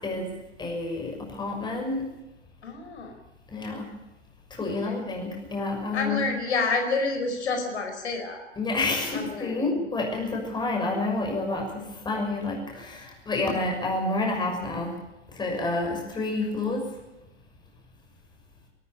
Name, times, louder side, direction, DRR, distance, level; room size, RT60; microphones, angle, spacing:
voice 1, 0.6-2.0 3.5-3.9 4.5-6.2 8.6-14.9 15.3-16.8, left 2 dB, 10° left, 1 dB, 6.3 m, -29 dB
voice 2, 2.6-3.2 4.8-5.0 5.9-8.5 9.1-9.8, left 3 dB, 65° left, 4 dB, 4.7 m, -29 dB
21.0 x 14.0 x 8.9 m, 0.98 s
figure-of-eight pair, 110°, 35 cm